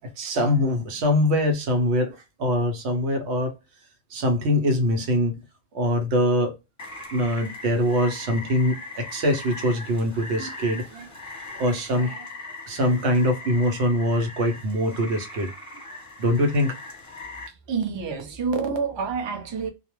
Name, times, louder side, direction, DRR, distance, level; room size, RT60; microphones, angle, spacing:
voice 1, 0.0-2.1 2.4-3.5 4.1-5.4 5.7-6.5 7.1-11.1 11.6-12.3 12.7-15.5 16.2-16.8, equal, 85° right, 1.0 m, -23 dB
Rain, 6.8-17.5, left 2 dB, 20° left, 0.7 m, -40 dB
voice 2, 17.5-19.7, right 5 dB, 35° right, 0.5 m, -28 dB
2.4 x 2.1 x 2.9 m
omnidirectional pair, 1.1 m